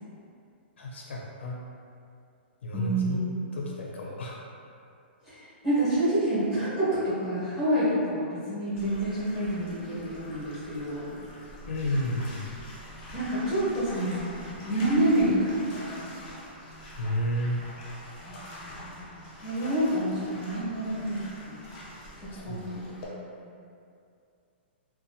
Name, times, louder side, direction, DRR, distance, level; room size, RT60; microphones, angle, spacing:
voice 1, 0.8-1.6 2.6-3.2 3.5-4.4 11.7-12.5 17.0-17.6 22.3-22.8, left 1 dB, 85° left, -3 dB, 0.5 m, -31 dB
voice 2, 2.7-3.3 5.2-11.1 13.1-16.1 18.2-19.1 19.4-21.6 22.2-23.1 23.4-23.5, right 1 dB, 10° right, -14 dB, 1.1 m, -28 dB
Bathtub (filling or washing), 8.8-23.1, equal, 35° left, 0.6 m, -45 dB
2.7 x 2.2 x 2.6 m, 2.5 s
hypercardioid pair, 160°, 6 cm